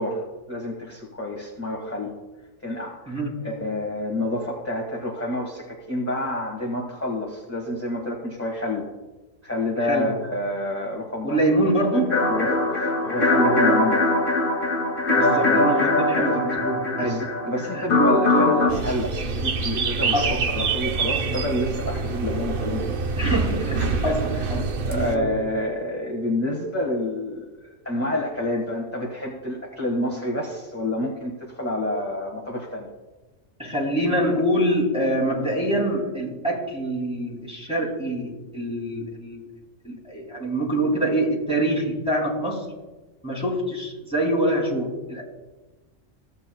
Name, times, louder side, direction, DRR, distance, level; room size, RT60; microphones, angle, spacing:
voice 1, 0.0-2.1 2.6-3.2 3.4-8.8 9.4-11.4 12.3-14.2 15.5-15.6 17.0-22.9 23.8-24.1 24.5-32.9, left 1 dB, 10° left, -2 dB, 1.1 m, -28 dB
voice 2, 3.1-3.5 9.8-10.1 11.2-12.3 15.1-17.3 17.7-17.8 20.1-20.4 23.2-25.4 33.6-39.4 39.8-42.6 43.2-45.2, right 1 dB, 5° right, -3 dB, 2.5 m, -25 dB
sound 1, 12.1-18.7, left 2 dB, 35° left, 2.0 m, -21 dB
sound 2, 18.7-25.2, right 4 dB, 50° right, 0.7 m, -26 dB
16.0 x 8.3 x 2.2 m, 1.2 s
omnidirectional pair, 1.4 m